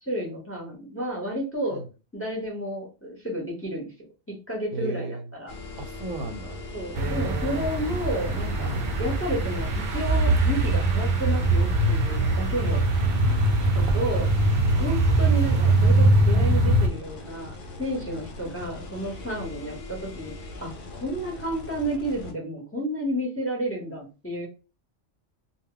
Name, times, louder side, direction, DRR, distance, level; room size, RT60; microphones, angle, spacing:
voice 1, 0.0-1.8 2.1-3.9 4.3-5.5 6.7-8.7 9.0-12.9 13.7-14.3 14.8-24.5, equal, 15° left, 0.6 m, -31 dB
voice 2, 4.7-5.2 5.8-6.6 7.0-7.7 8.6-8.9 13.6-13.9 14.7-14.9 18.1-18.3 19.3-19.5, right 2 dB, 90° right, 1.0 m, -35 dB
sound 1, 5.5-22.3, left 2 dB, 55° left, 0.6 m, -40 dB
sound 2, 7.0-16.9, right 2 dB, 65° right, 0.5 m, -22 dB
2.1 x 2.1 x 3.7 m
omnidirectional pair, 1.3 m